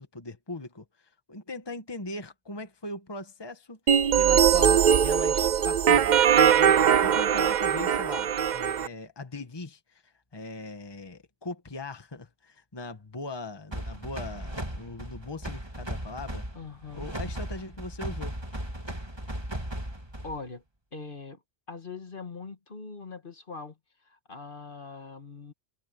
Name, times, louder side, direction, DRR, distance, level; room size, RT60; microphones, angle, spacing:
voice 1, 0.0-16.5 16.9-18.4, left 2 dB, 20° left, 1.5 m, -40 dB
sound 1, 3.9-8.9, right 8 dB, 50° right, 0.6 m, -21 dB
sound 2, 13.7-20.5, right 1 dB, 20° right, 2.7 m, -37 dB
voice 2, 16.5-17.1 20.2-20.6 20.9-21.4 21.7-25.5, left 4 dB, 50° left, 1.9 m, -42 dB
omnidirectional pair, 1.2 m